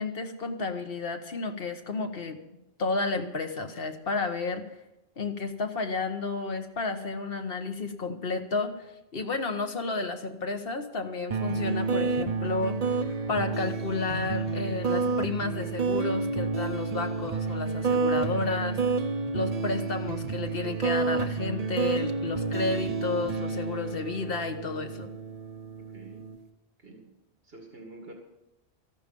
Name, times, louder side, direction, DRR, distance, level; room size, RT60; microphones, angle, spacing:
voice 1, 0.0-2.4 2.8-4.6 5.2-8.9 9.1-18.8 19.3-25.1, left 3 dB, 60° left, 6 dB, 1.4 m, -32 dB
sound 1, 11.3-26.4, right 4 dB, 40° right, 0.7 m, -30 dB
voice 2, 25.9-26.3 26.8-27.1 27.4-28.1, right 2 dB, 65° right, 1 dB, 2.3 m, -47 dB
13.5 x 11.5 x 5.3 m, 0.90 s
omnidirectional pair, 1.1 m